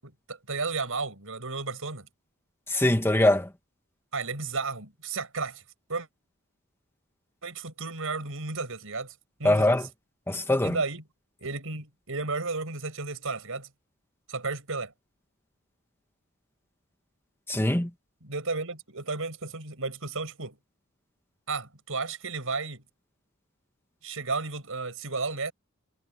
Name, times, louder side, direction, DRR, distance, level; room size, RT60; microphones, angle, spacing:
voice 1, 0.0-2.1 4.1-5.6 5.9-6.1 7.4-9.1 9.4-9.9 10.6-11.0 11.4-13.7 14.3-14.9 18.2-20.6 21.5-22.8 24.0-25.5, right 3 dB, 65° right, 7.0 m, -33 dB
voice 2, 2.7-3.5 9.4-9.8 10.3-10.8 17.5-17.9, left 1 dB, 10° left, 1.7 m, -22 dB
head